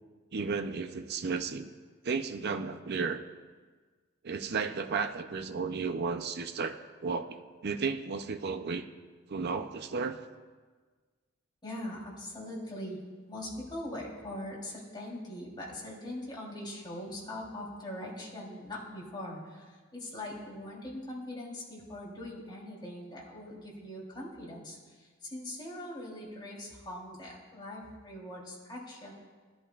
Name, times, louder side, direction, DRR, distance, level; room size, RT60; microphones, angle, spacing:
voice 1, 0.3-1.7 2.0-3.2 4.2-8.8 9.3-10.2, right 5 dB, 55° right, 7 dB, 0.5 m, -33 dB
voice 2, 11.6-13.0 13.3-29.1, left 1 dB, 25° left, -4 dB, 3.2 m, -41 dB
19.0 x 11.0 x 2.4 m, 1.4 s
head